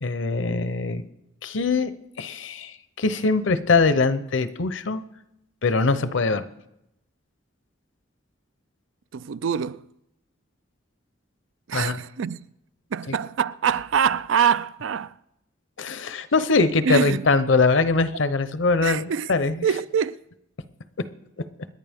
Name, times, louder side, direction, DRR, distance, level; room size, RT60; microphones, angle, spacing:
voice 1, 0.0-1.0 1.4-5.0 5.6-6.4 11.7-12.0 13.1-13.2 15.8-19.7, left 3 dB, 65° left, 0.8 m, -22 dB
voice 2, 9.1-9.8 11.7-12.4 12.9-15.1 16.9-17.2 18.8-19.3 19.6-20.2, right 7 dB, 70° right, 0.4 m, -24 dB
27.0 x 11.0 x 3.6 m
head